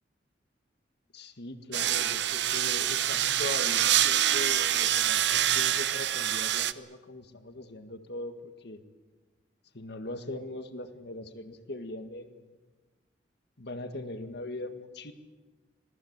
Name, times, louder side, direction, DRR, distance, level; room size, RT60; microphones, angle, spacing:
voice 1, 1.1-8.8 9.7-12.5 13.6-15.1, left 2 dB, 65° left, 8 dB, 1.9 m, -40 dB
sound 1, 1.7-6.7, right 11 dB, 65° right, 0.8 m, -26 dB
26.0 x 19.0 x 8.2 m, 1.3 s
head